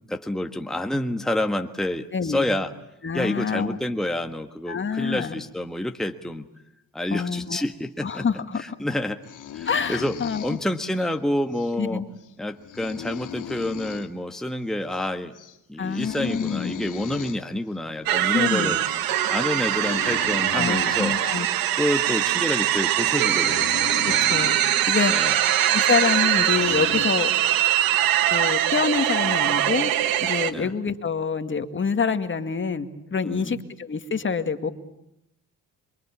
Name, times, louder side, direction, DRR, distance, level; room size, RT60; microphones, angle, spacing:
voice 1, 0.1-2.7 3.1-6.5 6.9-8.2 8.6-9.2 9.5-12.0 12.4-15.3 15.7-18.8 19.3-21.1 21.8-23.7 24.0-24.3 25.1-25.3 30.5-30.7 33.2-33.6, left 1 dB, ahead, 5 dB, 1.5 m, -28 dB
voice 2, 2.1-2.5 3.0-3.8 4.7-5.4 7.1-7.6 8.0-8.8 9.7-10.5 11.8-12.1 15.8-16.7 18.3-18.8 20.5-21.5 24.0-24.6 24.9-25.1 25.7-27.3 28.3-29.9 30.2-34.7, left 5 dB, 35° left, 8 dB, 2.1 m, -26 dB
sound 1, 9.2-11.1 11.5-11.7 12.2-12.3 12.5-14.1 14.4-14.5 14.8-15.1 15.3-15.6 15.9-17.4 18.2-18.4 18.8-19.0 19.5-21.3 21.8-22.0 22.6-22.7 22.9-24.6 25.1-25.3 26.0-26.1 26.4-27.1, left 10 dB, 60° left, 2.7 m, -38 dB
sound 2, 18.1-30.5, right 12 dB, 80° right, 1.6 m, -22 dB
27.5 x 24.0 x 8.5 m, 0.83 s
cardioid pair, 85°, 34 cm